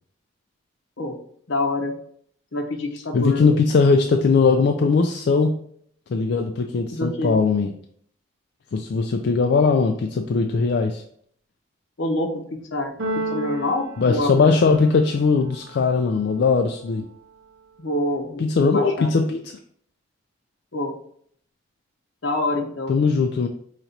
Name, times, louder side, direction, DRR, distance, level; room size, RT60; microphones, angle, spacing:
voice 1, 1.5-1.9 2.5-3.5 6.9-7.4 12.0-12.9 13.3-14.6 17.8-19.1 20.7-20.9 22.2-22.9, left 1 dB, 75° left, 3 dB, 0.8 m, -26 dB
voice 2, 3.1-5.5 6.1-7.7 8.7-11.0 14.0-17.0 18.4-19.5 22.9-23.5, left 4 dB, 55° left, 4 dB, 0.3 m, -19 dB
Keyboard (musical), 13.0-15.1, right 1 dB, 85° right, 0.6 m, -31 dB
5.7 x 2.9 x 2.6 m, 0.63 s
head